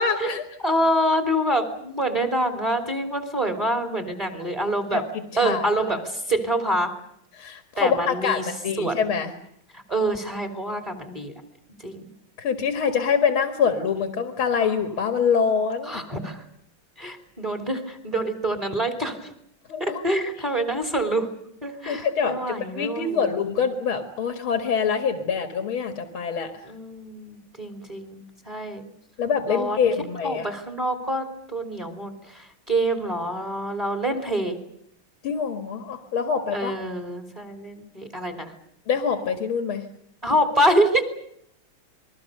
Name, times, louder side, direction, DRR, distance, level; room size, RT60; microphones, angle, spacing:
voice 1, 0.0-0.4 4.9-5.0 5.4-6.0 7.3-9.3 12.4-16.0 19.7-20.2 21.9-26.5 29.2-30.5 35.2-36.8 38.9-39.8, left 6 dB, 70° left, 7 dB, 2.7 m, -25 dB
voice 2, 0.6-5.0 5.4-6.9 7.8-8.5 8.8-9.0 9.7-11.3 11.8-12.0 14.5-14.7 15.9-16.4 17.0-19.3 19.8-21.3 21.6-23.3 26.6-28.9 29.5-29.8 30.2-34.6 36.5-38.5 40.2-41.0, right 1 dB, 15° right, 7 dB, 3.2 m, -26 dB
28.5 x 22.0 x 6.7 m, 0.73 s
omnidirectional pair, 2.4 m